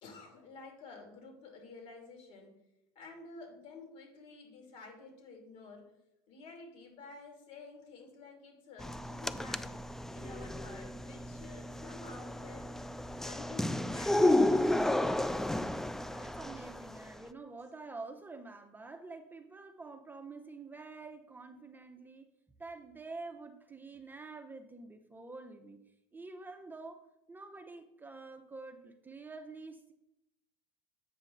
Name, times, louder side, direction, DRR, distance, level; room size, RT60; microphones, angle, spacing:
voice 1, 0.0-2.6 2.9-5.9 6.3-9.7 10.1-12.7 13.2-15.0, left 3 dB, 60° left, 2 dB, 2.8 m, -51 dB
sound 1, 8.8-17.2, left 1 dB, 5° left, 0.3 m, -32 dB
voice 2, 16.1-22.3 22.6-25.8 26.1-29.9, right 3 dB, 15° right, 5 dB, 0.7 m, -47 dB
8.2 x 5.3 x 3.9 m, 0.87 s
supercardioid pair, 95°, 13 cm